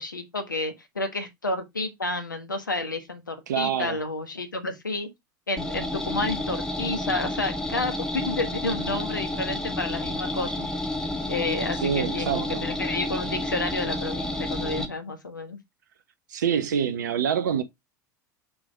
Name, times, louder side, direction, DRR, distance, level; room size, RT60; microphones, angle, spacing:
voice 1, 0.0-5.1 5.5-10.7 11.3-15.6, left 2 dB, 85° left, 1.3 m, -30 dB
voice 2, 3.5-4.0 11.8-12.6 14.8-14.9 16.3-17.6, right 8 dB, 70° right, 0.8 m, -26 dB
sound 1, 5.6-14.9, left 1 dB, 5° left, 1.6 m, -30 dB
6.0 x 3.6 x 4.4 m
figure-of-eight pair, 75°, 10 cm